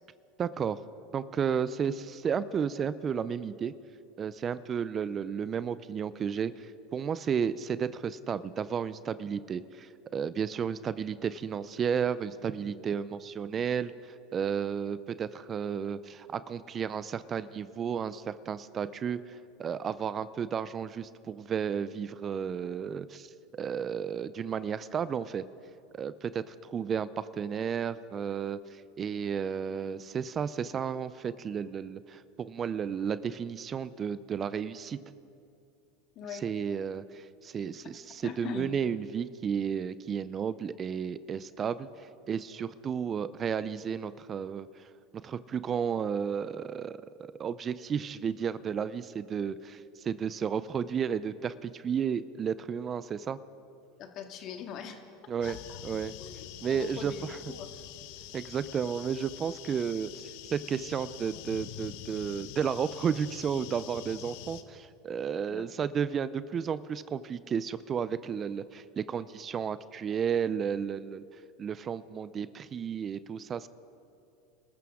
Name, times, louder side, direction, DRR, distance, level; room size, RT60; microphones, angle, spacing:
voice 1, 0.4-0.8 1.1-3.8 4.2-25.4 25.9-35.0 36.3-44.9 45.1-53.4 55.3-55.6 55.8-56.1 56.6-57.1 58.3-71.2 71.6-73.7, right 7 dB, 35° right, 16 dB, 0.5 m, -33 dB
voice 2, 36.2-36.5 38.2-38.7 54.0-55.0 55.5-56.3 56.7-57.7 65.5-65.7, left 7 dB, 50° left, 5 dB, 1.9 m, -42 dB
sound 1, 55.4-64.6, left 12 dB, 65° left, 0.9 m, -45 dB
27.5 x 14.0 x 3.7 m, 2.6 s
hypercardioid pair, 90°, 0 cm